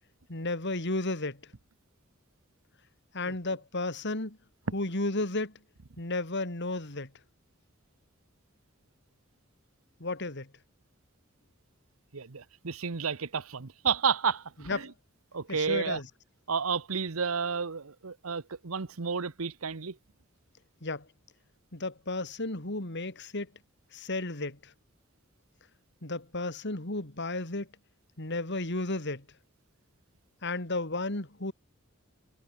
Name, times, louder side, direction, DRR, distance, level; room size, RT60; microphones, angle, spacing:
voice 1, 0.3-1.4 3.1-4.4 4.7-5.5 6.0-7.1 10.0-10.5 14.7-14.9 15.5-16.1 20.8-21.0 21.7-23.5 23.9-24.7 26.0-27.7 28.2-29.2 30.4-31.5, left 2 dB, 60° left, 3.2 m, -33 dB
voice 2, 12.1-14.9 15.3-16.0 16.5-19.9, right 6 dB, 90° right, 1.0 m, -31 dB
head